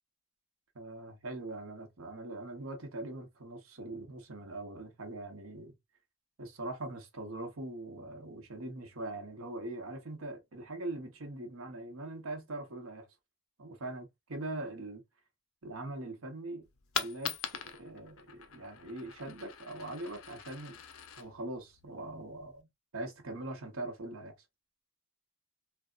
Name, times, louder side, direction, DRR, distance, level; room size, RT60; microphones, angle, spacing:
voice 1, 0.7-5.8 6.4-13.1 13.6-15.0 15.6-16.7 16.9-17.4 17.7-20.8 21.1-24.3, right 2 dB, 90° right, 0.9 m, -42 dB
Coin (dropping), 16.6-22.6, left 8 dB, 90° left, 0.5 m, -43 dB
3.4 x 2.0 x 2.3 m
head